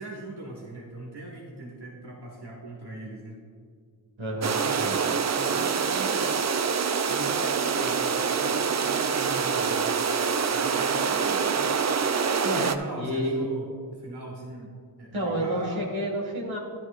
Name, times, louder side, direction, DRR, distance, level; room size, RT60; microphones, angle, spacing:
voice 1, 0.0-3.4 4.4-6.3 7.1-9.8 10.5-11.7 12.3-15.9, right 2 dB, 55° right, -1 dB, 1.6 m, -40 dB
voice 2, 4.2-4.6 12.4-13.5 15.1-16.6, equal, 80° right, -2 dB, 2.2 m, -29 dB
sound 1, 4.4-12.8, right 6 dB, 35° right, 0.5 m, -25 dB
10.5 x 10.5 x 2.5 m, 2.1 s
cardioid pair, 50°, 46 cm